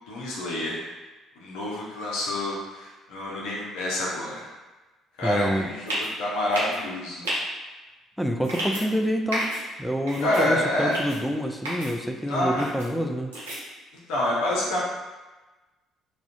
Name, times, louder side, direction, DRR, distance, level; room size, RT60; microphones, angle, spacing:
voice 1, 0.1-0.8 1.4-4.5 5.2-7.3 10.2-10.9 12.2-12.6 14.1-14.8, left 1 dB, 70° left, -5 dB, 0.5 m, -27 dB
voice 2, 5.2-5.7 8.2-9.5 9.8-13.3, equal, ahead, 3 dB, 0.3 m, -27 dB
sound 1, 5.9-6.1 6.5-6.8 7.2-7.4 8.4-8.8 9.3-9.6 10.1-10.4 10.9-11.2 11.6-11.9 12.6-12.9 13.3-13.6, right 1 dB, 85° right, 0.6 m, -30 dB
2.4 x 2.1 x 2.5 m, 1.2 s
hypercardioid pair, 50°, 0 cm